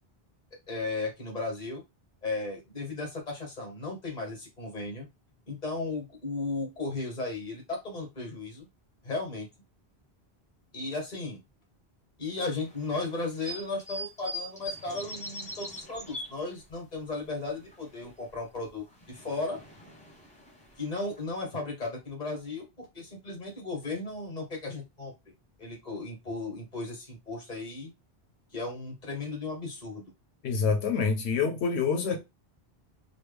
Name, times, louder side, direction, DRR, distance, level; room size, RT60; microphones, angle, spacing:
voice 1, 0.7-1.8 2.2-5.1 5.5-8.7 9.0-9.5 10.7-11.4 12.2-19.6 20.8-25.1 25.6-27.9 28.5-30.0, left 3 dB, 40° left, 1.5 m, -35 dB
sound 1, 12.4-17.0 17.3-18.4 18.7-21.2, equal, 10° left, 0.7 m, -42 dB
voice 2, 30.4-32.2, left 5 dB, 90° left, 0.9 m, -26 dB
3.1 x 2.3 x 3.3 m
omnidirectional pair, 1.1 m